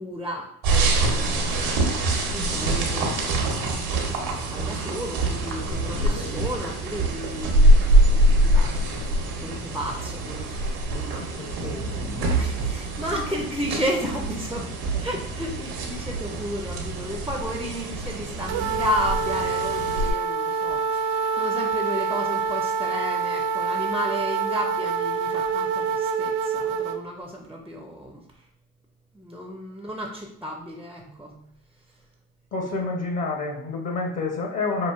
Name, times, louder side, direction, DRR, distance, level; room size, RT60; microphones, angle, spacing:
voice 1, 0.0-3.1 4.3-10.6 10.9-11.3 12.1-14.7 15.0-28.2 29.1-31.5, equal, 5° right, 1 dB, 0.4 m, -33 dB
sound 1, 0.6-20.1, right 1 dB, 90° right, 0.9 m, -24 dB
sound 2, 2.2-4.4 5.1-7.7 8.3-10.5 11.0-13.1, left 3 dB, 75° left, 1.4 m, -41 dB
voice 2, 11.2-12.1 14.9-15.1 32.5-34.9, left 3 dB, 45° left, 2 dB, 0.9 m, -29 dB
sound 3, 18.5-27.0, right 5 dB, 70° right, 0.5 m, -26 dB
5.1 x 2.4 x 2.4 m, 0.72 s
hypercardioid pair, 65°, 42 cm